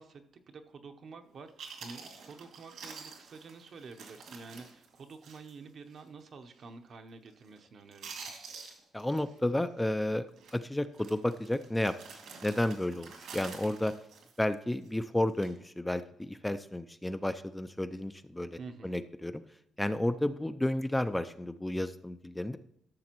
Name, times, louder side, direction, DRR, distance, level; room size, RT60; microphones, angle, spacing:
voice 1, 0.0-8.3 18.6-19.0, right 4 dB, 55° right, 6 dB, 0.8 m, -49 dB
Chewing mastication, 1.2-1.3 1.6-5.6 5.9-6.0 6.5-6.8 7.1-7.6 7.9-9.4 9.6-9.9 10.4-10.5 10.9-14.9 15.3-15.5, right 5 dB, 80° right, 2.0 m, -48 dB
voice 2, 8.9-10.3 10.5-11.9 12.4-13.9 14.4-18.6 18.8-19.4 19.8-22.6, left 1 dB, 10° left, 9 dB, 0.4 m, -32 dB
13.5 x 6.5 x 3.0 m, 0.74 s
cardioid pair, 90°, 0 cm